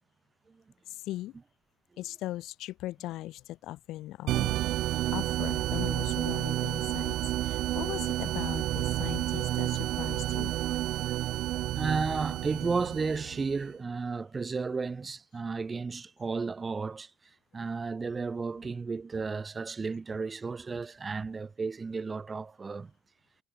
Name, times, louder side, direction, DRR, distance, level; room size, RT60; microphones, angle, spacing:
voice 1, 0.9-1.4 2.0-4.6 5.1-10.6, left 15 dB, 85° left, 1.9 m, -39 dB
sound 1, 4.3-13.6, right 15 dB, 75° right, 1.3 m, -30 dB
voice 2, 11.7-17.1 17.5-22.9, right 4 dB, 20° right, 0.8 m, -33 dB
cardioid pair, 180°, 0 cm